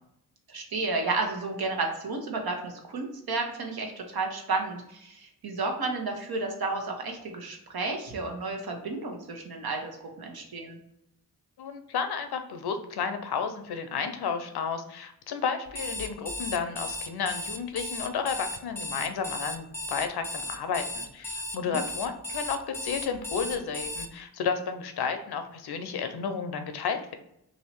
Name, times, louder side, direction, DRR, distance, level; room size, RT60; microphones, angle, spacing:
voice 1, 0.5-10.8 21.6-21.8, right 3 dB, 65° right, 2 dB, 1.0 m, -32 dB
voice 2, 11.6-27.1, left 6 dB, 75° left, 7 dB, 0.6 m, -32 dB
Alarm, 15.7-24.1, left 2 dB, 5° left, 0.5 m, -36 dB
3.0 x 2.8 x 4.4 m, 0.78 s
cardioid pair, 45°, 39 cm